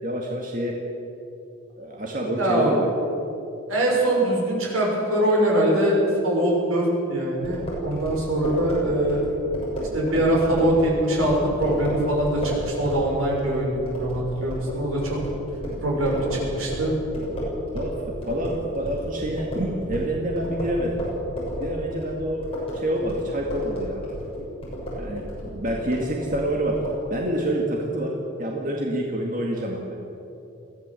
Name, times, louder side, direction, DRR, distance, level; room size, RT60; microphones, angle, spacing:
voice 1, 0.0-0.7 1.8-2.9 17.7-21.1 21.6-24.0 24.9-26.7 27.1-28.1 28.4-29.9, right 1 dB, 40° right, -1 dB, 2.2 m, -27 dB
voice 2, 2.4-2.8 3.7-9.3 9.9-15.2 15.8-16.9, right 1 dB, 85° right, -2 dB, 6.4 m, -23 dB
sound 1, 7.4-18.0 18.2-27.0, equal, 25° left, 7.0 m, -32 dB
22.0 x 16.0 x 7.8 m, 2.9 s
head